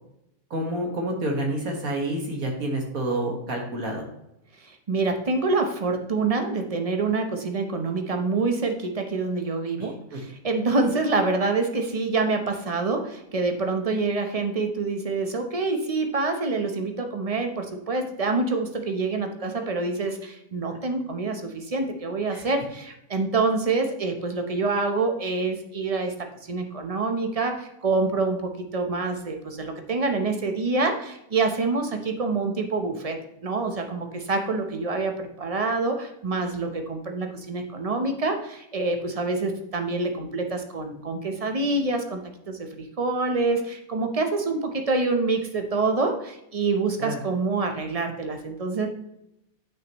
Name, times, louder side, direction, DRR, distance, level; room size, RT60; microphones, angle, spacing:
voice 1, 0.5-4.1 9.8-10.2 22.3-22.4 47.0-47.2, right 1 dB, 70° right, 1 dB, 2.1 m, -29 dB
voice 2, 4.6-33.2 33.4-42.2 42.5-48.9, right 3 dB, 30° right, 5 dB, 0.8 m, -26 dB
8.7 x 6.5 x 3.0 m, 0.83 s
omnidirectional pair, 1.6 m